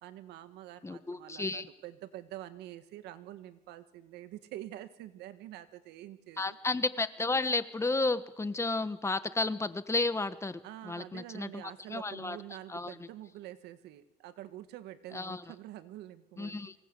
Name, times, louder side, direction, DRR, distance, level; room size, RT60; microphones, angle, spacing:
voice 1, 0.0-6.6 10.6-16.7, right 13 dB, 85° right, 11 dB, 1.8 m, -46 dB
voice 2, 0.8-1.7 6.4-12.4 12.7-12.9 15.1-15.4 16.4-16.7, left 3 dB, 15° left, 12 dB, 1.4 m, -32 dB
25.0 x 18.5 x 8.4 m, 0.92 s
cardioid pair, 110°, 17 cm